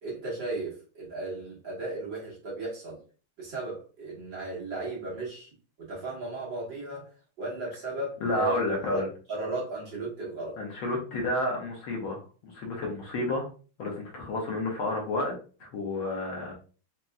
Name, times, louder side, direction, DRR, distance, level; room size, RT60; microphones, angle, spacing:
voice 1, 0.0-3.0 3.4-5.5 5.8-7.1 7.4-9.0 9.3-10.6, right 2 dB, 55° right, -5 dB, 2.3 m, -35 dB
voice 2, 8.2-9.1 10.6-13.5 13.8-15.3 15.6-16.5, left 2 dB, 70° left, 0 dB, 1.8 m, -30 dB
5.2 x 2.9 x 2.3 m, 0.37 s
omnidirectional pair, 2.4 m